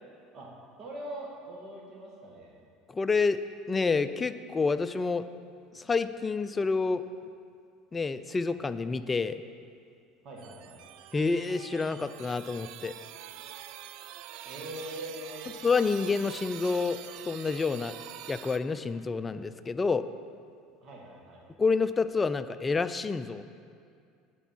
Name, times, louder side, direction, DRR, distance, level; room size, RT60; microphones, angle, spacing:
voice 1, 0.8-2.6 10.2-10.8 14.4-15.5 20.8-21.4, right 1 dB, 50° right, -2 dB, 2.1 m, -42 dB
voice 2, 2.9-3.4 3.7-5.2 5.7-7.0 7.9-9.4 11.1-12.9 15.6-17.0 17.3-17.9 18.3-20.1 21.6-23.6, left 4 dB, 20° left, 11 dB, 0.4 m, -28 dB
sound 1, 10.4-18.6, right 11 dB, 65° right, 0.4 m, -45 dB
9.9 x 4.6 x 7.3 m, 2.3 s
hypercardioid pair, 90°, 0 cm